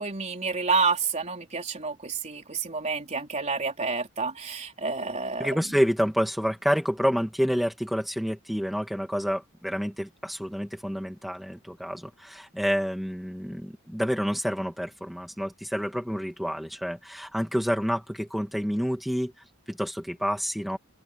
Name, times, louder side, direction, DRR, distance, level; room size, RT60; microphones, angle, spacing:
voice 1, 0.0-5.5, right 4 dB, 30° right, 3.9 m, -29 dB
voice 2, 5.4-20.8, equal, ahead, 2.1 m, -28 dB
head